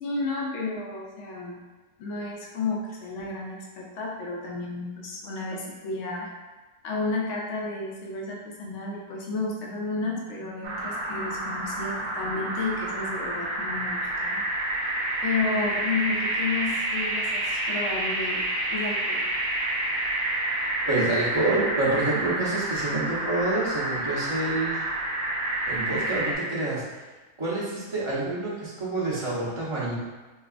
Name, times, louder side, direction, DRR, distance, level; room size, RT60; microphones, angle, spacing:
voice 1, 0.0-1.6 2.0-6.3 6.8-14.4 15.2-19.2, left 3 dB, 65° left, -2 dB, 0.8 m, -32 dB
sound 1, 10.6-26.3, right 1 dB, 80° right, 1.1 m, -29 dB
voice 2, 20.8-24.8 25.7-26.8 27.4-29.9, right 2 dB, 25° right, -9 dB, 0.8 m, -27 dB
4.5 x 2.3 x 2.4 m, 1.2 s
omnidirectional pair, 1.6 m